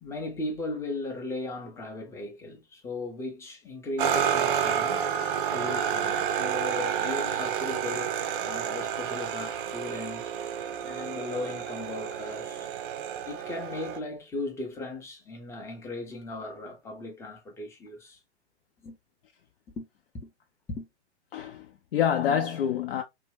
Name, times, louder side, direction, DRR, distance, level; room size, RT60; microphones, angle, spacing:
voice 1, 0.0-5.0 5.5-10.3 10.8-12.7 13.3-18.2 18.8-19.0 19.7-19.9 20.1-20.3 20.7-20.9, left 2 dB, 10° left, 0.6 m, -37 dB
sound 1, 4.0-14.0, right 8 dB, 50° right, 0.5 m, -30 dB
voice 2, 21.3-23.0, left 8 dB, 55° left, 0.5 m, -27 dB
2.6 x 2.2 x 3.1 m
figure-of-eight pair, 115°, 35 cm